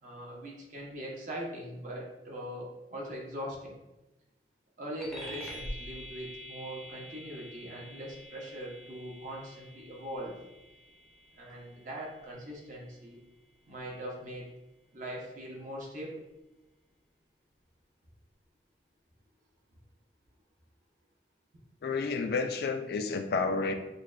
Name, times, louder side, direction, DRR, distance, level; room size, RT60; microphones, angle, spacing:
voice 1, 0.0-3.8 4.8-10.4 11.3-13.2 13.6-14.5 14.9-16.2, equal, 45° right, -3 dB, 0.8 m, -41 dB
sound 1, 5.0-14.8, equal, 5° left, 0.6 m, -47 dB
voice 2, 21.8-23.7, left 4 dB, 55° left, 7 dB, 0.3 m, -30 dB
6.4 x 2.2 x 2.4 m, 1.0 s
head